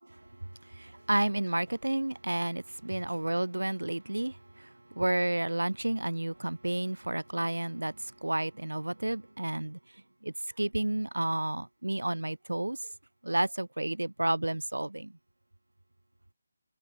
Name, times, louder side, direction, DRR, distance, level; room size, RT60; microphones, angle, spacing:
voice 1, 0.2-9.8 10.2-12.8 13.2-15.1, right 1 dB, 90° right, 0.3 m, -31 dB
open air
figure-of-eight pair, 155°, 0 cm